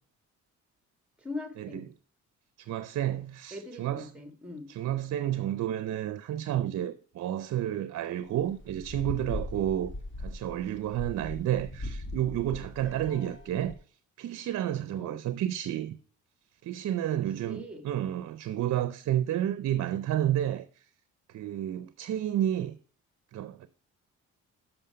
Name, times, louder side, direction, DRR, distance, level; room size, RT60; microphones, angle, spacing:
voice 1, 1.2-1.9 3.5-4.7 13.1-13.4 14.9-15.2 17.4-17.9, left 2 dB, 5° right, 1.5 m, -41 dB
voice 2, 2.6-4.1 4.7-9.9 10.2-13.7 14.2-16.0 16.6-20.7 21.3-22.8 23.3-23.7, right 11 dB, 60° right, 0.6 m, -31 dB
sound 1, 8.3-13.8, left 1 dB, 40° left, 1.6 m, -40 dB
6.8 x 5.6 x 5.6 m
cardioid pair, 90°, 30 cm